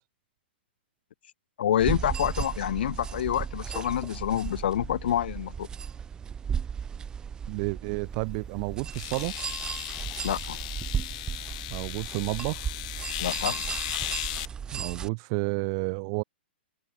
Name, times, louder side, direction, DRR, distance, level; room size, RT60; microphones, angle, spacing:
voice 1, 1.6-5.7 10.2-10.6 13.2-13.6, left 10 dB, 65° left, 2.2 m, -27 dB
sound 1, 1.8-15.1, right 7 dB, 15° right, 4.3 m, -35 dB
voice 2, 7.5-9.3 11.7-12.7 14.7-16.2, right 35 dB, 35° right, 1.0 m, -31 dB
sound 2, 8.1-8.2 8.9-14.5, left 19 dB, 40° left, 1.2 m, -36 dB
open air
hypercardioid pair, 155°, 6 cm